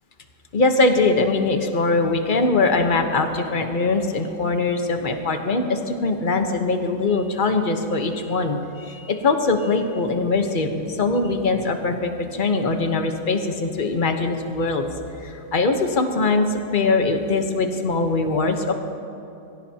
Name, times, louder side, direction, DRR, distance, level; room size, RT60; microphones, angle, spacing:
voice 1, 0.5-14.9 15.2-18.7, left 3 dB, 35° left, 5 dB, 1.0 m, -22 dB
23.5 x 15.5 x 2.9 m, 2.8 s
omnidirectional pair, 1.8 m